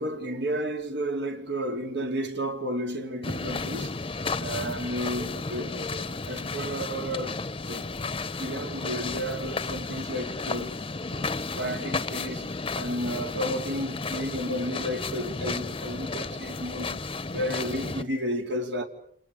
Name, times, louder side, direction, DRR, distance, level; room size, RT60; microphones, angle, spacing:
voice 1, 0.0-10.8 11.1-17.0 17.3-18.8, equal, 65° right, 3.5 m, -32 dB
sound 1, 3.2-18.0, left 3 dB, 30° left, 0.9 m, -33 dB
29.5 x 28.5 x 5.3 m
head